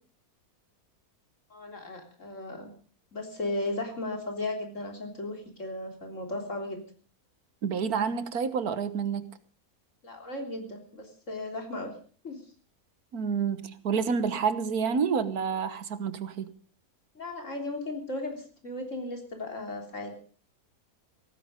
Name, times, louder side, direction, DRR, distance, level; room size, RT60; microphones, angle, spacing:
voice 1, 1.5-2.7 3.1-6.8 10.0-11.9 12.2-12.4 17.2-20.2, left 2 dB, 55° left, 3 dB, 3.8 m, -36 dB
voice 2, 7.6-9.3 13.1-16.5, right 6 dB, 90° right, 12 dB, 1.7 m, -29 dB
17.5 x 15.5 x 5.2 m, 0.41 s
omnidirectional pair, 1.6 m